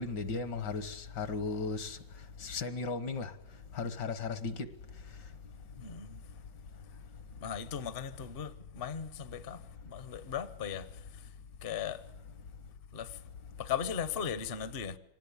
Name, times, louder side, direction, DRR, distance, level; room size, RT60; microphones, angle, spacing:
voice 1, 0.0-2.0 2.4-3.3 3.7-4.7, left 4 dB, 65° left, 2.0 m, -35 dB
voice 2, 5.7-6.2 7.4-11.3 11.6-12.0 12.9-13.2 13.6-15.0, left 8 dB, 40° left, 0.9 m, -38 dB
24.5 x 19.0 x 8.5 m
omnidirectional pair, 2.0 m